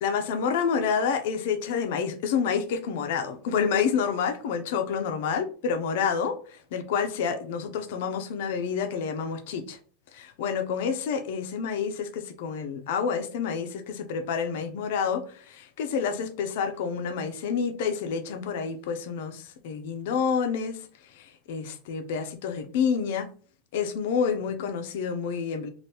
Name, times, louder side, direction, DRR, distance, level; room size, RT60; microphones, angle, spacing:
voice 1, 0.0-9.8 10.1-20.9 21.1-23.3 23.7-25.7, left 6 dB, 70° left, 0.5 m, -28 dB
3.3 x 2.5 x 2.8 m
supercardioid pair, 150°, 0 cm